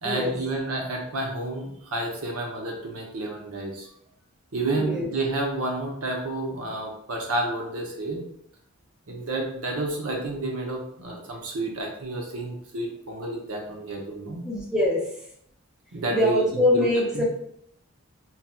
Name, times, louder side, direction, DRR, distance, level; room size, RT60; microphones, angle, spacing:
voice 1, 0.0-3.9 4.5-8.2 9.1-14.4 15.9-16.5 16.7-16.9 17.1-17.2, right 2 dB, 85° right, 0 dB, 0.7 m, -30 dB
voice 2, 4.8-5.1 14.4-15.0 16.1-17.2, left 1 dB, 5° right, -4 dB, 0.5 m, -23 dB
4.0 x 2.3 x 2.2 m, 0.70 s
head